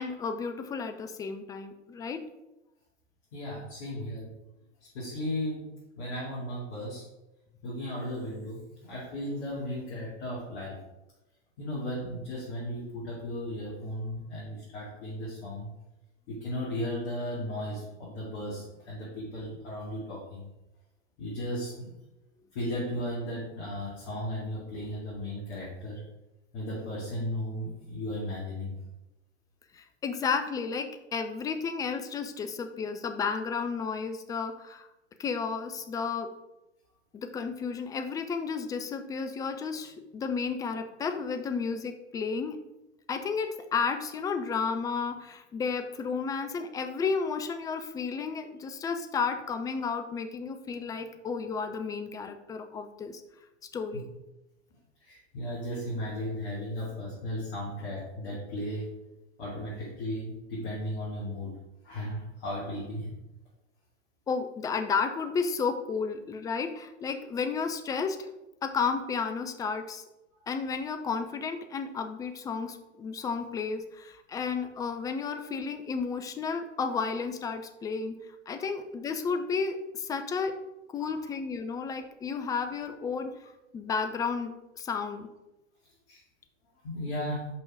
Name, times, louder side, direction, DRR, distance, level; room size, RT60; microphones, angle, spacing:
voice 1, 0.0-2.3 29.7-34.9 35.2-36.3 37.1-42.6 43.1-53.2 53.7-54.1 64.3-68.2 68.6-70.0 70.5-78.2 78.5-80.6 80.9-83.3 83.7-85.3, left 5 dB, 10° left, 7 dB, 0.4 m, -32 dB
voice 2, 3.3-4.3 4.9-5.7 6.0-7.0 7.6-10.8 11.6-15.7 16.3-20.5 21.2-21.9 22.5-26.0 26.5-28.8 53.9-54.0 55.0-58.9 59.4-61.5 61.8-63.1 81.0-81.3 86.1-86.2 86.8-87.5, left 1 dB, 55° left, -6 dB, 2.4 m, -35 dB
5.6 x 5.3 x 4.8 m, 0.94 s
figure-of-eight pair, 90°, 36 cm